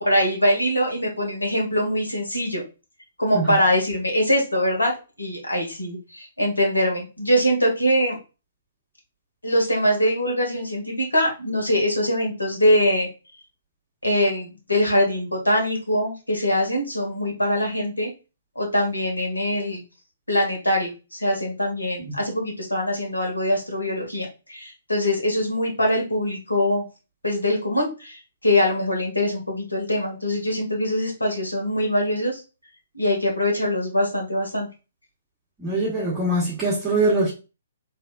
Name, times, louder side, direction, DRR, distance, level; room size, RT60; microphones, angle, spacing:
voice 1, 0.0-2.6 3.2-4.9 5.2-8.2 9.4-13.1 14.0-18.1 18.5-19.8 20.3-26.9 27.2-32.4 32.9-34.7, left 1 dB, 80° left, 1.4 m, -23 dB
voice 2, 35.6-37.3, right 2 dB, 10° right, 1.7 m, -23 dB
3.5 x 3.4 x 2.3 m
figure-of-eight pair, 125°, 0 cm